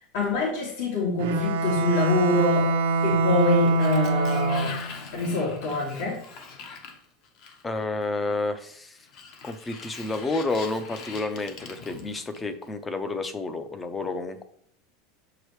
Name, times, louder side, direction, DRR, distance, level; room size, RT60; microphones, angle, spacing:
voice 1, 0.1-2.7 3.0-4.7 5.1-6.2, left 2 dB, 70° left, -4 dB, 2.8 m, -25 dB
Bowed string instrument, 1.2-5.0, right 3 dB, 90° right, 0.7 m, -24 dB
Sliding door, 3.2-7.8 9.0-12.7, left 5 dB, 45° left, 1.1 m, -42 dB
voice 2, 7.6-9.0 9.4-14.4, left 3 dB, 10° left, 9 dB, 0.5 m, -30 dB
7.3 x 4.8 x 3.1 m, 0.64 s
supercardioid pair, 160°, 0 cm